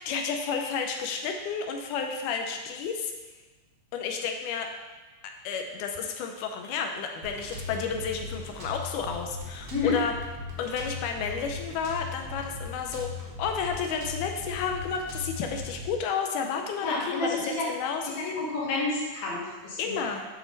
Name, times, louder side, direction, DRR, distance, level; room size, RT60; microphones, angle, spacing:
voice 1, 0.0-3.1 3.9-4.7 5.4-10.2 10.6-17.4 17.7-18.5 19.8-20.3, left 6 dB, 90° left, 4 dB, 2.2 m, -31 dB
sound 1, 7.2-15.9, left 3 dB, 75° right, 0.8 m, -39 dB
voice 2, 16.8-17.7 18.0-20.1, left 3 dB, 60° left, -4 dB, 2.5 m, -30 dB
7.1 x 6.0 x 3.9 m, 1.2 s
omnidirectional pair, 3.5 m